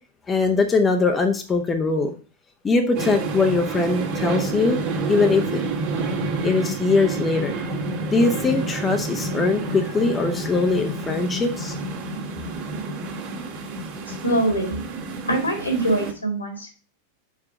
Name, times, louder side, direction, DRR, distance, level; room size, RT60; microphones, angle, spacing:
voice 1, 0.3-2.1 2.6-4.8 5.1-5.6 6.4-7.6 8.1-11.8, left 3 dB, 20° left, 5 dB, 0.7 m, -21 dB
sound 1, 2.9-16.1, right 3 dB, 45° right, 1.6 m, -29 dB
voice 2, 14.1-14.8 15.3-16.7, right 1 dB, 80° left, 3 dB, 2.1 m, -23 dB
4.8 x 4.8 x 5.9 m, 0.38 s
figure-of-eight pair, 90°, 0 cm